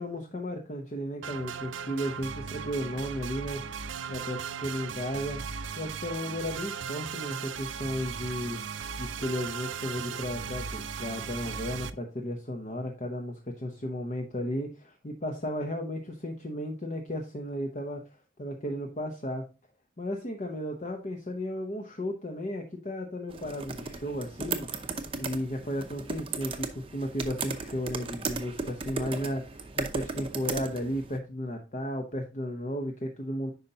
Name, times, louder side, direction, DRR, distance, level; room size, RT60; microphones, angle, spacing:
voice 1, 0.0-3.8 4.1-5.4 5.8-18.0 18.4-19.4 20.0-24.7 25.1-33.5, equal, 40° left, 3 dB, 0.8 m, -34 dB
sound 1, 1.2-11.9, right 6 dB, 80° right, 0.5 m, -37 dB
sound 2, 23.3-31.2, right 4 dB, 30° right, 0.7 m, -36 dB
9.4 x 5.4 x 2.8 m, 0.31 s
head